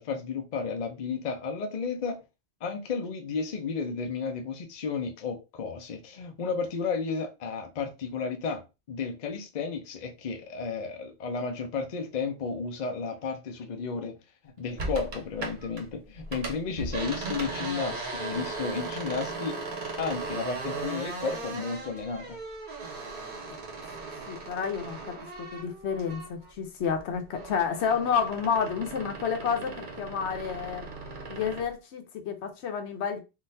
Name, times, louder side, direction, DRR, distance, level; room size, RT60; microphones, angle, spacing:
voice 1, 0.0-2.2 2.6-14.2 14.6-19.6 20.0-22.4, left 5 dB, 50° left, 0.7 m, -33 dB
sound 1, 14.8-15.8 16.1-26.5 26.8-31.7, right 3 dB, 50° right, 0.9 m, -37 dB
voice 2, 24.3-30.8 31.3-33.2, left 6 dB, 85° left, 1.0 m, -30 dB
3.8 x 2.4 x 2.7 m
omnidirectional pair, 1.1 m